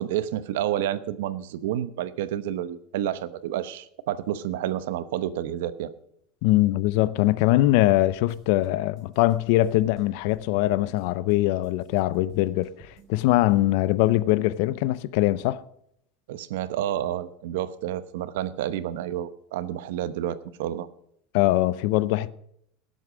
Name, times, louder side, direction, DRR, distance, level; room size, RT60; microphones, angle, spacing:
voice 1, 0.0-5.9 16.3-20.9, right 11 dB, 85° right, 0.9 m, -29 dB
voice 2, 6.4-15.6 21.3-22.3, left 16 dB, 60° left, 0.6 m, -22 dB
sound 1, 8.0-8.7 9.0-11.3 11.6-13.3, right 2 dB, 35° right, 3.3 m, -55 dB
17.5 x 7.9 x 5.1 m
supercardioid pair, 160°, 0 cm